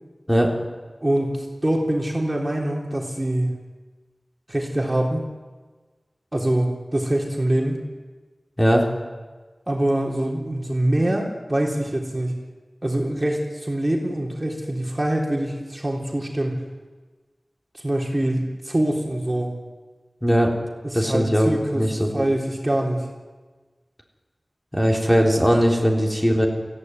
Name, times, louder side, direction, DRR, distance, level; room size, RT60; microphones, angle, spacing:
voice 1, 1.0-3.5 4.5-5.2 6.3-7.8 9.7-12.4 12.8-16.6 17.7-19.5 20.8-23.1, right 1 dB, 25° right, -1 dB, 3.6 m, -24 dB
voice 2, 20.2-20.5 20.9-22.2 24.7-26.5, equal, 10° left, 0 dB, 3.6 m, -19 dB
23.0 x 15.5 x 9.6 m, 1.3 s
wide cardioid pair, 55°, 0 cm